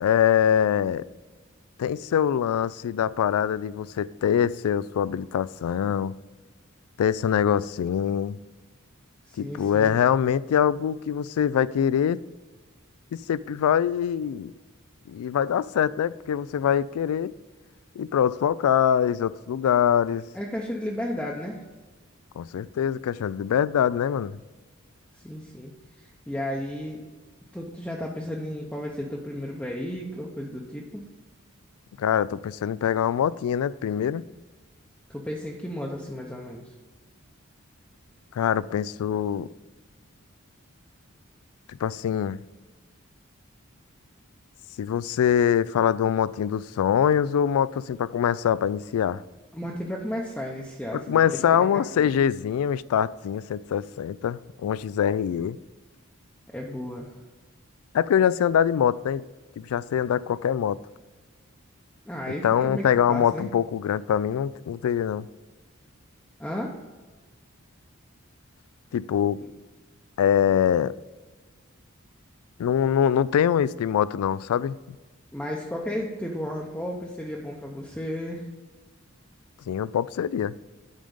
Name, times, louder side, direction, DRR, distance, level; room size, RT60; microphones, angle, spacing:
voice 1, 0.0-1.0 1.8-6.1 7.0-8.4 9.4-12.2 13.3-14.5 15.1-17.3 18.0-20.2 22.4-24.4 32.0-34.2 38.3-39.5 41.7-42.4 44.8-49.2 50.9-55.6 57.9-59.2 59.6-60.8 62.4-65.3 68.9-69.4 70.2-70.9 72.6-74.7 79.7-80.5, left 8 dB, 85° left, 18 dB, 0.3 m, -24 dB
voice 2, 9.2-9.9 20.3-21.6 25.1-27.0 27.5-31.0 35.1-36.7 49.5-52.1 56.5-57.2 62.1-63.5 66.4-66.7 69.4-69.5 75.3-78.4, equal, 5° left, -2 dB, 0.6 m, -34 dB
9.0 x 5.1 x 5.4 m, 1.3 s
head